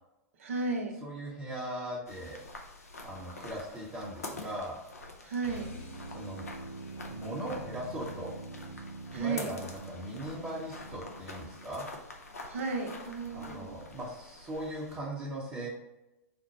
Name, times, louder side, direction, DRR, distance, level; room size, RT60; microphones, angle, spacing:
voice 1, 0.4-0.9 5.2-5.7 9.1-9.5 12.5-13.7, right 4 dB, 65° right, 2 dB, 0.8 m, -34 dB
voice 2, 1.0-2.4 3.0-4.8 6.1-6.5 7.1-8.4 9.1-11.9 13.3-15.7, right 1 dB, 20° right, -6 dB, 0.9 m, -39 dB
sound 1, 2.1-15.0, left 2 dB, 80° left, 0.7 m, -47 dB
sound 2, 5.4-11.8, right 2 dB, 60° left, 1.2 m, -45 dB
4.3 x 2.1 x 4.1 m, 0.94 s
figure-of-eight pair, 100°, 8 cm